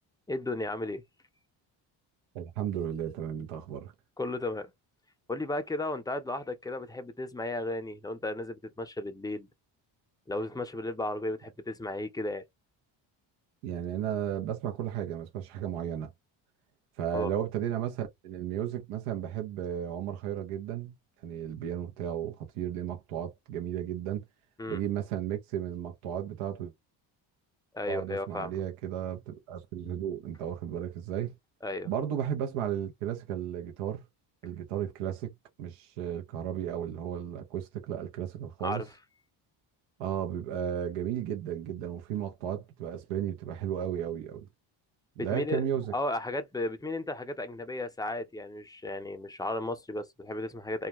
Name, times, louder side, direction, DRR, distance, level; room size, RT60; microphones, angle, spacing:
voice 1, 0.3-1.0 4.2-4.7 5.3-9.5 10.3-12.4 17.1-17.3 24.6-24.8 27.7-28.5 31.6-31.9 38.6-38.9 45.2-45.6 45.9-50.9, left 2 dB, 10° left, 0.5 m, -34 dB
voice 2, 2.3-3.9 13.6-16.1 17.0-21.0 21.2-24.2 24.7-26.7 27.9-31.3 31.8-34.0 34.4-35.3 35.6-38.8 40.0-44.5 45.2-45.9, right 10 dB, 85° right, 0.8 m, -34 dB
2.4 x 2.1 x 2.9 m
supercardioid pair, 75°, 50 cm